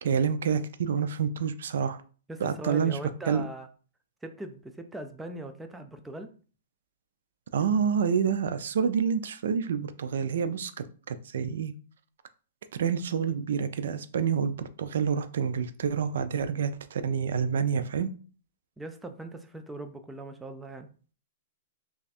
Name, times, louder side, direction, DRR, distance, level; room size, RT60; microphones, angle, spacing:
voice 1, 0.0-2.0 2.4-3.0 3.3-3.4 7.5-11.7 12.8-18.1, right 7 dB, 75° right, 0.4 m, -28 dB
voice 2, 2.3-3.7 4.2-6.3 18.8-20.9, right 1 dB, 5° right, 0.3 m, -40 dB
3.2 x 2.4 x 4.1 m
hypercardioid pair, 155°, 0 cm